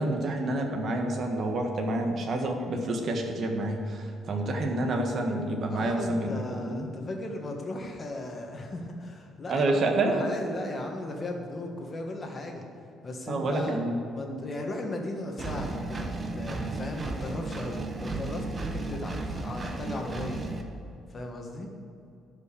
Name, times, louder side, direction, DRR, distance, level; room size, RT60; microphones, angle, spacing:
voice 1, 0.0-6.9 9.5-10.4 13.3-14.0 14.3-14.4, right 2 dB, 40° right, 3 dB, 1.5 m, -28 dB
voice 2, 5.7-12.6 13.0-13.8 14.1-20.4 21.1-21.7, left 2 dB, 25° left, 2 dB, 1.5 m, -37 dB
Engine, 15.4-20.6, right 2 dB, 20° right, 0.9 m, -34 dB
12.5 x 5.5 x 8.4 m, 2.6 s
cardioid pair, 160°, 0 cm